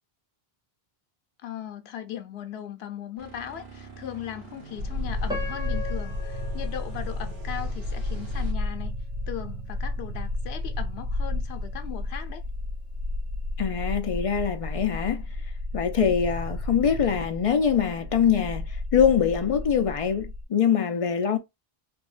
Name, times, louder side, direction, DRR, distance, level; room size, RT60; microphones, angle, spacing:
voice 1, 1.4-8.9 9.3-12.4, left 10 dB, 85° left, 0.9 m, -38 dB
sound 1, 3.2-8.5, right 4 dB, 60° right, 1.1 m, -46 dB
sound 2, 4.8-20.4, left 2 dB, 80° right, 0.9 m, -32 dB
Piano, 5.3-8.3 8.9-9.0 9.6-9.9, left 3 dB, 5° right, 0.7 m, -39 dB
voice 2, 13.6-15.2 15.7-21.4, left 7 dB, 50° left, 0.4 m, -24 dB
3.4 x 2.1 x 2.4 m
omnidirectional pair, 1.0 m